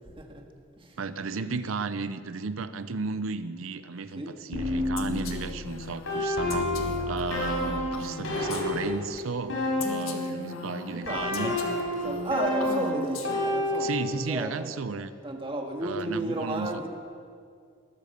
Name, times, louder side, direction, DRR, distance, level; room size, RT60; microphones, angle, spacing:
voice 1, 1.0-6.7 7.1-11.6 13.8-15.1 15.8-16.8, right 4 dB, 75° right, 13 dB, 0.6 m, -34 dB
sound 1, 4.5-10.5 11.0-14.3, left 1 dB, 75° left, 4.3 m, -30 dB
Female speech woman speaking, 5.0-9.2 9.8-13.8, left 3 dB, 90° left, 1.6 m, -39 dB
voice 2, 10.9-11.6 12.0-14.7 15.2-16.9, right 1 dB, 25° right, 3 dB, 1.6 m, -33 dB
20.5 x 10.5 x 6.7 m, 2.3 s
head